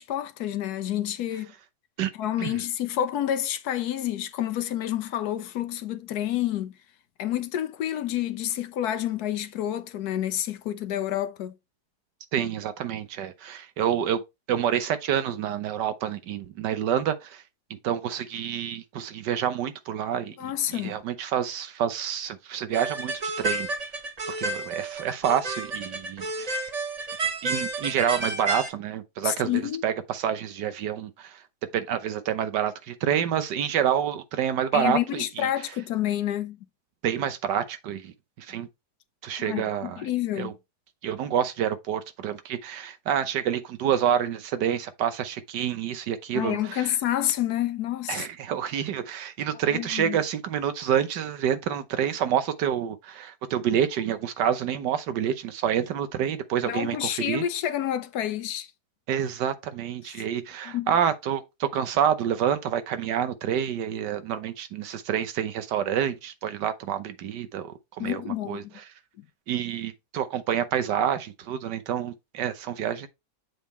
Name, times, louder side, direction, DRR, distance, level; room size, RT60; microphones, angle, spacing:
voice 1, 0.0-1.5 2.1-6.7 7.2-11.5 20.4-21.0 29.2-29.8 34.7-36.6 39.4-40.5 46.3-48.2 49.7-50.2 56.7-58.7 60.2-60.3 60.7-61.0 68.0-68.7, left 11 dB, 70° left, 1.2 m, -29 dB
voice 2, 12.3-14.2 14.5-17.4 17.7-23.7 24.3-26.7 27.4-31.4 31.7-35.5 37.0-38.7 39.2-40.0 40.4-40.5 41.0-46.9 48.1-57.4 59.1-68.6 69.5-73.1, right 9 dB, 85° right, 1.5 m, -28 dB
sound 1, 22.7-28.7, right 2 dB, 35° right, 0.7 m, -31 dB
7.3 x 3.6 x 4.2 m
omnidirectional pair, 1.8 m